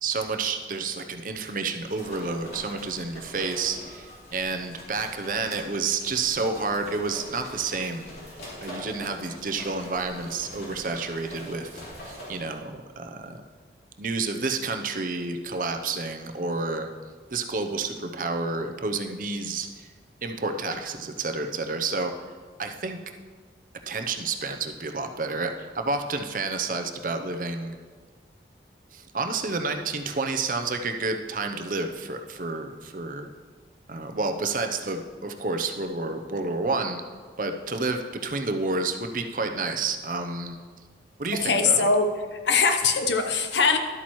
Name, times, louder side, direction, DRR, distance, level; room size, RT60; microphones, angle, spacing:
voice 1, 0.0-8.1 8.6-13.4 14.0-16.9 17.3-19.9 20.2-22.1 22.6-23.0 23.9-27.8 28.9-33.3 33.9-37.0 37.4-40.6 41.2-41.9, right 3 dB, 50° right, 6 dB, 0.7 m, -30 dB
sound 1, 1.7-12.5, left 1 dB, 60° left, 3.1 m, -43 dB
voice 2, 41.4-43.8, left 4 dB, 85° left, 6 dB, 0.8 m, -22 dB
12.0 x 8.5 x 3.1 m, 1.5 s
head